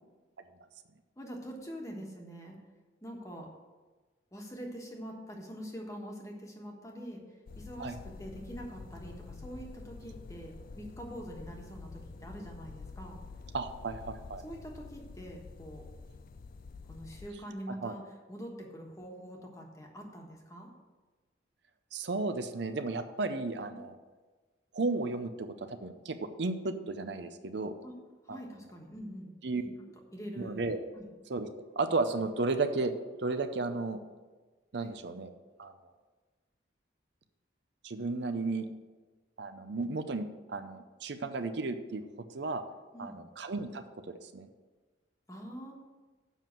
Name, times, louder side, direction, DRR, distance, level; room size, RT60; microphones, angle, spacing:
voice 1, 1.2-2.6 3.0-3.5 4.3-7.2 7.6-13.2 14.4-15.8 16.9-20.7 27.8-29.7 30.1-30.6 30.9-31.1 34.7-34.9 42.9-43.2 45.3-45.7, equal, 15° left, 1 dB, 1.3 m, -44 dB
sound 1, 7.5-17.3, left 4 dB, 45° left, 0.4 m, -48 dB
voice 2, 13.5-14.4 17.7-17.9 21.9-24.0 24.7-27.8 28.3-28.4 29.4-29.6 30.4-30.8 31.3-34.0 34.7-35.3 35.6-35.7 37.8-38.7 39.4-42.0 42.3-42.6 43.0-44.5, right 3 dB, 60° right, 8 dB, 0.6 m, -34 dB
7.2 x 5.8 x 7.4 m, 1.3 s
head